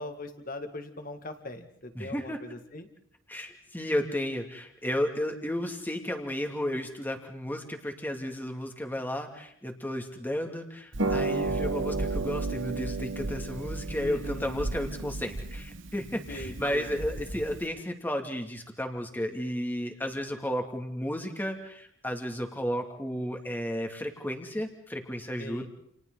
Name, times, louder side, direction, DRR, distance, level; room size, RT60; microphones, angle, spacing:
voice 1, 0.0-2.9 14.0-14.6 16.3-16.9 25.4-25.7, left 1 dB, 45° left, 7 dB, 2.2 m, -40 dB
voice 2, 1.9-2.4 3.3-25.7, equal, 10° left, 4 dB, 2.5 m, -33 dB
Harp, 10.9-17.7, right 3 dB, 65° right, 1.5 m, -33 dB
30.0 x 30.0 x 4.1 m, 0.69 s
head